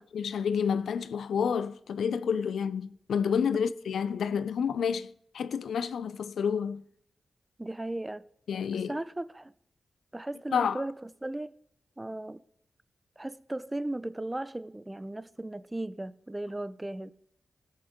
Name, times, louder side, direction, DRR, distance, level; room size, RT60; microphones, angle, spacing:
voice 1, 0.0-6.8 8.5-9.0 10.5-10.8, left 7 dB, 85° left, 0.4 m, -29 dB
voice 2, 7.6-8.2 8.9-9.5 10.1-11.5 12.0-12.4 13.2-17.1, right 1 dB, 20° right, 0.5 m, -36 dB
14.0 x 7.9 x 3.6 m
cardioid pair, 55°, 0 cm